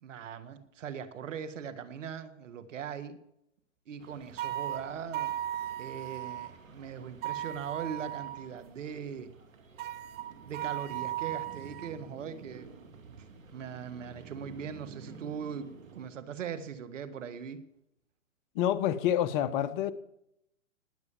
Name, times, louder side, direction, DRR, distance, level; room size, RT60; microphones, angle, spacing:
voice 1, 0.0-3.2 3.9-5.3 5.8-9.3 10.5-12.7 13.2-13.3 13.5-17.6, right 7 dB, 70° right, 1.9 m, -40 dB
sound 1, 4.0-16.1, right 4 dB, 85° right, 2.5 m, -52 dB
sound 2, 4.4-6.5 7.2-8.5 9.8-12.0, right 12 dB, 25° right, 1.1 m, -36 dB
voice 2, 18.5-19.9, left 11 dB, 35° left, 1.1 m, -28 dB
19.5 x 8.3 x 7.3 m
hypercardioid pair, 130°, 39 cm